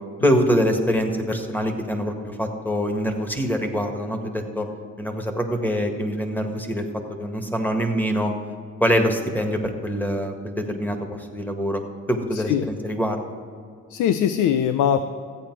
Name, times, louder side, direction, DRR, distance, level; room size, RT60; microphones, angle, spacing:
voice 1, 0.2-4.7 5.0-6.9 7.2-8.3 8.8-11.8 12.1-13.2, equal, 5° left, 4 dB, 1.7 m, -24 dB
voice 2, 12.3-12.6 13.9-15.0, left 9 dB, 85° left, 11 dB, 0.6 m, -21 dB
14.5 x 8.5 x 4.7 m, 2.2 s
cardioid pair, 90°, 30 cm